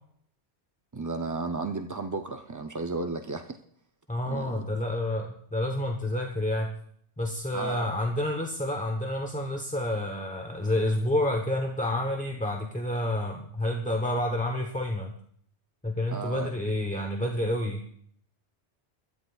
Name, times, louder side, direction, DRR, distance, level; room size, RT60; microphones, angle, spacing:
voice 1, 0.9-3.6 4.2-4.7 7.5-7.9 16.1-16.5, right 3 dB, 30° right, 6 dB, 0.3 m, -33 dB
voice 2, 4.1-6.7 7.2-15.1 15.8-17.8, left 1 dB, 5° left, 2 dB, 0.9 m, -29 dB
24.0 x 13.5 x 2.4 m, 0.65 s
omnidirectional pair, 1.2 m